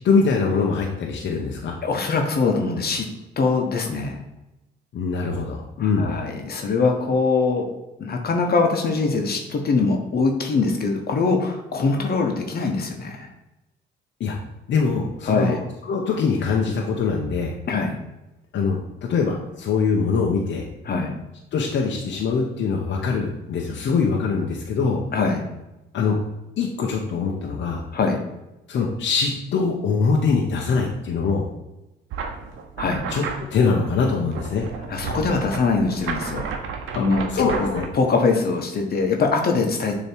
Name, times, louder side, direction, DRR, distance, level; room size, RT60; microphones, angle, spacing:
voice 1, 0.0-1.7 4.9-6.1 14.2-14.3 14.7-17.5 18.5-18.8 19.1-20.6 21.5-25.0 25.9-26.2 26.6-27.8 28.7-31.4 33.1-33.2 33.5-34.7 36.9-37.0 37.3-37.8, left 5 dB, 65° left, 0 dB, 0.9 m, -23 dB
voice 2, 1.8-3.1 3.4-4.2 5.8-7.7 8.0-13.3 15.2-15.6 17.7-18.0 20.9-21.1 25.1-25.4 27.9-28.2 32.8-33.0 34.9-36.4 36.9-40.0, left 4 dB, 50° left, 3 dB, 1.1 m, -22 dB
sound 1, 32.1-37.9, right 5 dB, 85° right, 0.8 m, -32 dB
6.8 x 3.1 x 4.5 m, 0.95 s
cardioid pair, 90°, 20 cm